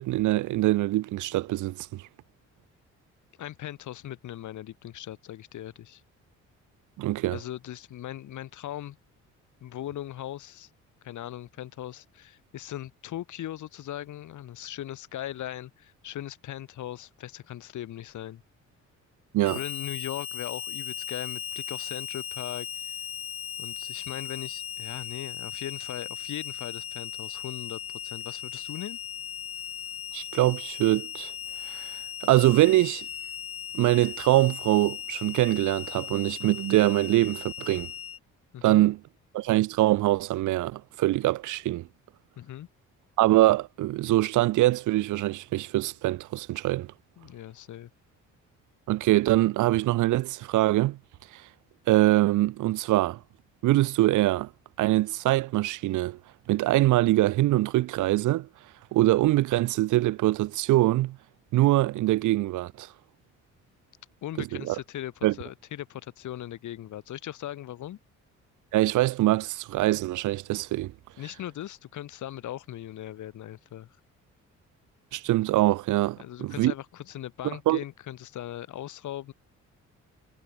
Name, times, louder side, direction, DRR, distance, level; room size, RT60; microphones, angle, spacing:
voice 1, 0.0-2.0 7.0-7.4 19.3-19.6 30.1-31.3 31.7-31.9 32.2-33.1 33.7-37.9 38.6-39.0 39.3-41.9 43.2-46.9 48.9-51.0 51.3-51.4 51.9-53.2 53.6-54.5 54.8-56.2 56.5-58.5 58.9-61.2 61.5-62.9 64.4-64.8 65.2-65.3 68.7-70.9 75.1-76.7 77.7-77.8, right 16 dB, 80° right, 0.8 m, -23 dB
voice 2, 3.4-6.0 7.3-9.0 9.6-10.7 11.0-18.4 19.5-22.9 23.6-29.0 38.5-38.9 42.4-42.7 47.2-47.9 64.2-68.0 71.2-73.9 76.2-79.3, left 12 dB, 75° left, 3.7 m, -39 dB
Harmonica, 19.4-38.2, left 9 dB, 50° left, 1.2 m, -37 dB
cardioid pair, 90°, 30 cm